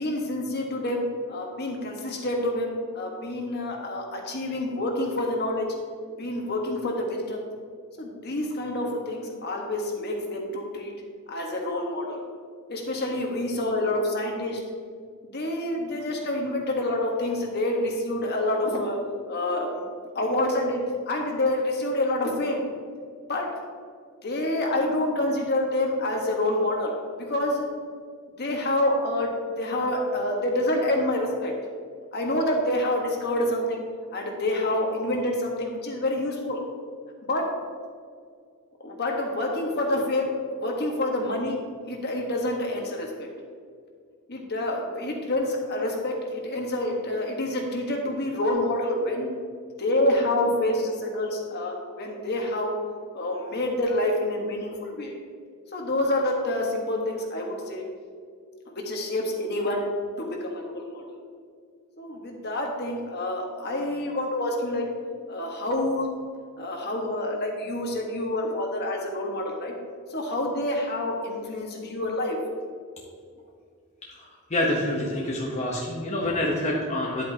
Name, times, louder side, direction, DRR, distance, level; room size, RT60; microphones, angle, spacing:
voice 1, 0.0-5.7 6.2-7.4 8.0-10.9 11.3-12.2 12.7-14.6 15.3-19.0 19.3-19.9 20.1-22.6 23.3-23.5 24.2-26.9 27.2-27.7 28.4-29.3 29.6-31.5 32.1-33.8 34.1-36.6 37.2-37.4 38.8-40.3 40.6-41.6 41.8-43.3 44.3-49.3 49.8-52.7 53.1-55.1 55.7-57.8 58.7-59.9 60.2-61.0 62.0-64.9 65.3-66.1 66.6-69.7 70.1-72.4, left 1 dB, 50° left, 1 dB, 1.5 m, -27 dB
voice 2, 74.1-77.2, left 1 dB, 35° left, -3 dB, 1.0 m, -27 dB
10.5 x 8.2 x 2.9 m, 2.1 s
head